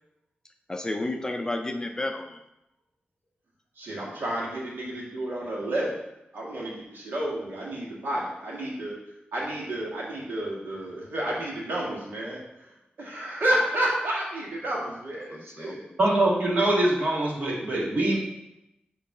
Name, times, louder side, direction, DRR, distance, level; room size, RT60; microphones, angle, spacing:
voice 1, 0.7-2.4 15.3-16.0, left 2 dB, 20° left, 5 dB, 0.4 m, -32 dB
voice 2, 3.8-6.0 6.3-9.0 9.3-15.8, right 1 dB, 80° right, -4 dB, 1.7 m, -31 dB
voice 3, 16.0-18.2, right 1 dB, 50° right, -4 dB, 1.6 m, -23 dB
6.7 x 3.1 x 4.8 m, 0.90 s
wide cardioid pair, 155°, 3 cm